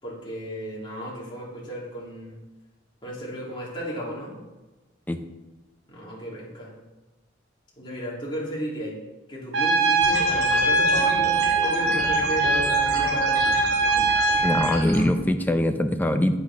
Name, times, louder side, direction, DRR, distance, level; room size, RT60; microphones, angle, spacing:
voice 1, 0.0-2.4 3.0-4.4 5.9-6.7 7.8-9.0 9.3-13.6, equal, 25° left, -5 dB, 3.2 m, -34 dB
Trumpet, 9.5-14.8, right 3 dB, 80° right, 3.7 m, -22 dB
sound 1, 10.0-15.0, right 1 dB, 60° right, 2.7 m, -34 dB
voice 2, 14.4-16.4, left 1 dB, 10° left, 7 dB, 0.6 m, -22 dB
8.7 x 8.1 x 5.6 m, 1.1 s
head